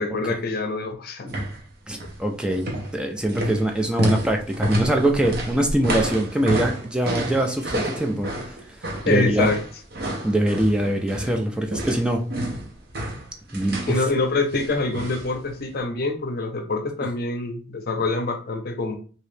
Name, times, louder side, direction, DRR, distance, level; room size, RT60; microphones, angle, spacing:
voice 1, 0.0-1.3 9.1-9.6 13.9-19.0, left 3 dB, 55° left, 5 dB, 0.6 m, -25 dB
sound 1, 1.3-1.6 1.9-2.2 2.5-11.4 11.7-14.0 14.5-15.3 15.6-15.7, right 1 dB, 55° right, 0.8 m, -29 dB
voice 2, 1.9-2.7 2.9-8.8 9.1-9.5 10.2-12.2 13.5-14.0, right 1 dB, 5° right, 3 dB, 0.3 m, -23 dB
3.0 x 2.7 x 3.2 m, 0.38 s
head